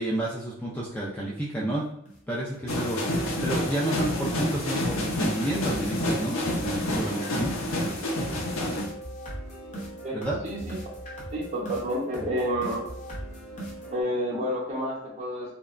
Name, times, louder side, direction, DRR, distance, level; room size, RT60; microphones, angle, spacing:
voice 1, 0.0-1.9 2.3-7.5 10.1-10.4, right 1 dB, 10° left, -5 dB, 0.4 m, -30 dB
sound 1, 1.6-1.7 2.1-2.2 2.5-2.7 3.0-14.0, right 1 dB, 35° left, 0.7 m, -40 dB
sound 2, 2.7-8.9, left 1 dB, 80° left, 0.5 m, -28 dB
voice 2, 10.4-10.8 11.3-12.8 13.9-15.5, equal, 35° right, -4 dB, 0.8 m, -29 dB
2.8 x 2.2 x 2.4 m, 0.72 s
head